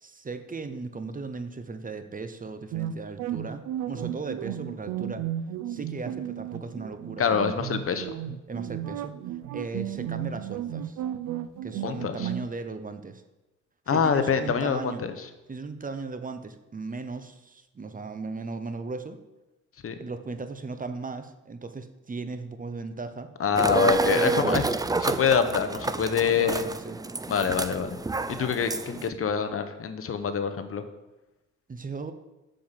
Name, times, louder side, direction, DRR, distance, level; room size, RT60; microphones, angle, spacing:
voice 1, 0.0-5.3 5.7-7.6 8.5-9.2 9.5-11.0 11.6-13.2 13.9-15.0 15.5-19.2 20.0-23.3 23.8-25.0 26.4-27.0 31.7-32.1, right 3 dB, 25° right, 9 dB, 0.9 m, -37 dB
sound 1, 2.7-12.4, right 11 dB, 90° right, 0.6 m, -34 dB
voice 2, 7.2-8.1 11.8-12.3 13.9-15.1 19.8-20.0 23.4-24.6 25.0-26.6 27.3-28.0 28.3-30.8, left 6 dB, 45° left, 9 dB, 1.1 m, -25 dB
sound 2, 23.6-29.1, right 2 dB, 10° right, 0.5 m, -28 dB
7.6 x 6.8 x 7.5 m, 1.0 s
cardioid pair, 90°, 30 cm